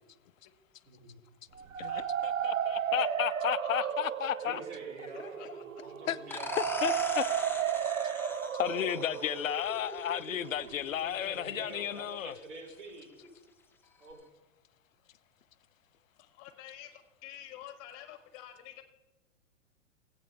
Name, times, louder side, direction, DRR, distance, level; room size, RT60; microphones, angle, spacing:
sound 1, 1.5-11.4, right 8 dB, 85° right, 0.7 m, -34 dB
voice 1, 1.8-4.6 6.1-7.3 8.6-12.3, left 10 dB, 80° left, 0.6 m, -33 dB
voice 2, 4.4-5.5 5.8-6.9 10.7-13.1 14.0-14.2, right 3 dB, 65° right, 4.0 m, -47 dB
voice 3, 5.1-5.5 13.2-13.3 16.2-18.8, left 11 dB, 40° left, 1.7 m, -49 dB
sound 2, 6.3-11.7, left 3 dB, 5° left, 0.6 m, -43 dB
19.5 x 8.7 x 3.5 m
hypercardioid pair, 105°, 39 cm